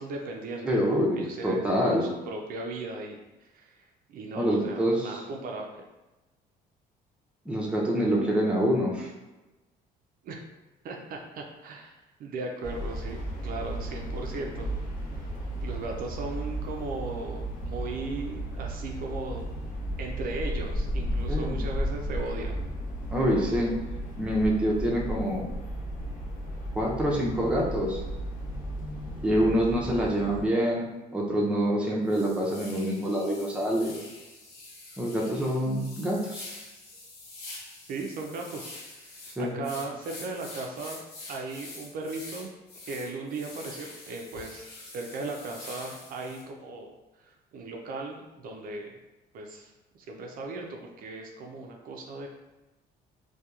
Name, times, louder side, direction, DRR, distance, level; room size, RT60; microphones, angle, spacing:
voice 1, 0.0-3.8 4.1-5.8 10.2-10.4 10.8-11.9 12.2-14.7 15.6-19.5 20.0-22.6 37.9-41.0 41.3-42.5 42.9-46.9 47.2-49.0 49.3-52.3, right 3 dB, 60° right, 2 dB, 0.4 m, -37 dB
voice 2, 0.6-2.1 4.3-5.2 7.5-9.1 21.3-21.6 23.1-23.8 24.2-25.5 26.7-28.0 29.2-34.0 35.0-36.5 39.4-39.6, equal, 5° right, -3 dB, 0.5 m, -26 dB
sound 1, 12.6-30.5, equal, 55° left, 0.8 m, -34 dB
sound 2, 31.6-31.7 32.1-46.4, left 2 dB, 70° left, 1.1 m, -45 dB
2.8 x 2.2 x 2.3 m, 1.1 s
cardioid pair, 110°, 17 cm